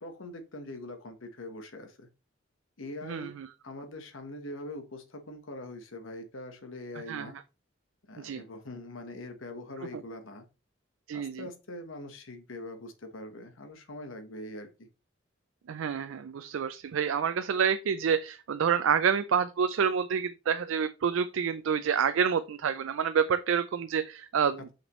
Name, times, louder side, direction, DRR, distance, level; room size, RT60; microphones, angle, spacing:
voice 1, 0.0-2.1 2.8-3.3 3.6-7.4 8.1-10.4 11.1-14.7, left 1 dB, 80° left, 1.2 m, -43 dB
voice 2, 3.0-3.5 7.1-7.3 8.2-8.4 11.1-11.5 15.7-24.7, right 7 dB, 80° right, 0.4 m, -28 dB
5.9 x 5.8 x 3.1 m
head